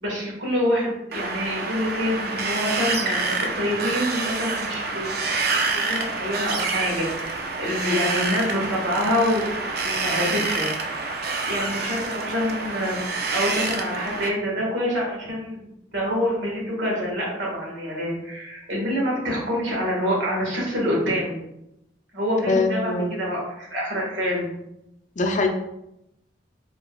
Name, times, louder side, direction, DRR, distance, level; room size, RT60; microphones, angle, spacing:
voice 1, 0.0-5.2 5.5-10.7 11.4-21.5 22.1-24.6, equal, 75° right, -3 dB, 1.7 m, -26 dB
Wind, 1.1-14.3, right 3 dB, 55° right, 0.5 m, -27 dB
voice 2, 22.5-23.1 25.2-25.5, left 3 dB, 40° left, 2 dB, 0.5 m, -22 dB
4.9 x 4.3 x 2.3 m, 0.84 s
head